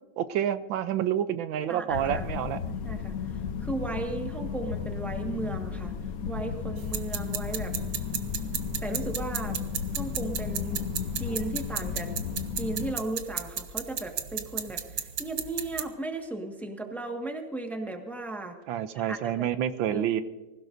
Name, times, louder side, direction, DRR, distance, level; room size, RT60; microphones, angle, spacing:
voice 1, 0.2-2.6 18.7-20.2, right 10 dB, 75° right, 12 dB, 1.4 m, -28 dB
voice 2, 1.7-2.2 2.7-5.9 6.2-7.7 8.8-9.6 9.9-10.8 11.2-12.1 12.5-18.5 18.9-19.5 19.9-20.0, right 2 dB, ahead, 3 dB, 1.2 m, -36 dB
sound 1, 1.9-12.9, left 7 dB, 55° left, 1.2 m, -34 dB
sound 2, 6.8-15.8, right 8 dB, 60° right, 1.2 m, -35 dB
25.0 x 16.0 x 2.6 m, 1.2 s
omnidirectional pair, 2.2 m